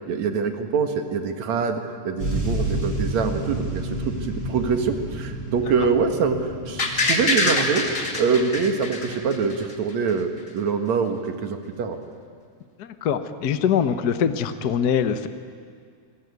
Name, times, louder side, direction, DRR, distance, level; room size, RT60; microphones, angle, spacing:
voice 1, 0.1-12.0, right 5 dB, 70° right, 6 dB, 2.9 m, -25 dB
sound 1, 2.2-9.7 10.4-10.5, right 1 dB, 40° right, 6.4 m, -31 dB
sound 2, 6.8-9.7 10.1-10.2, left 2 dB, 25° left, 2.6 m, -24 dB
voice 2, 12.8-15.3, left 7 dB, 60° left, 10 dB, 1.0 m, -23 dB
27.0 x 20.5 x 9.6 m, 2.1 s
omnidirectional pair, 3.3 m